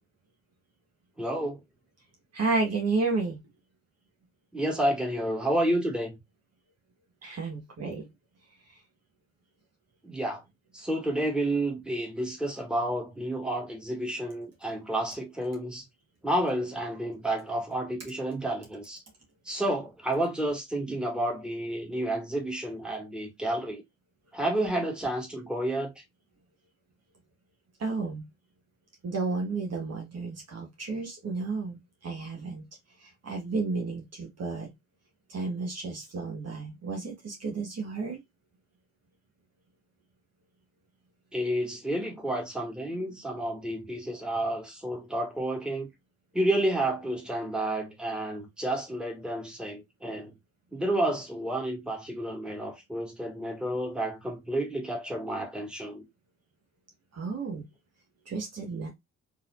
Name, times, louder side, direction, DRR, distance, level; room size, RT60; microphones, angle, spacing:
voice 1, 1.2-1.6 4.5-6.2 10.0-10.4 10.7-15.8 16.2-19.0 19.5-23.8 24.3-25.9 41.3-45.9 46.3-50.3 50.7-56.0, right 1 dB, 5° right, 2.0 m, -30 dB
voice 2, 2.3-3.4 7.2-8.1 27.8-28.2 29.0-32.6 33.0-34.7 35.3-38.2 57.1-57.6 58.3-58.9, right 3 dB, 45° right, 1.6 m, -32 dB
4.0 x 2.8 x 2.5 m
hypercardioid pair, 50°, 34 cm